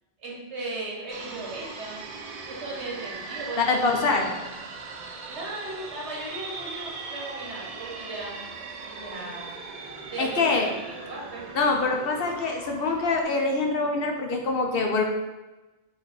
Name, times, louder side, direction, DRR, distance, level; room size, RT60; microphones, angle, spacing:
voice 1, 0.2-2.0 2.5-4.2 5.3-8.3 8.8-9.6 10.1-11.4, right 2 dB, 75° right, -3 dB, 1.4 m, -37 dB
sound 1, 1.1-13.2, right 4 dB, 50° right, 0.4 m, -40 dB
voice 2, 3.6-4.3 10.2-10.7 11.6-15.0, left 3 dB, 65° left, 2 dB, 0.8 m, -24 dB
4.0 x 2.6 x 4.7 m, 1.1 s
omnidirectional pair, 1.1 m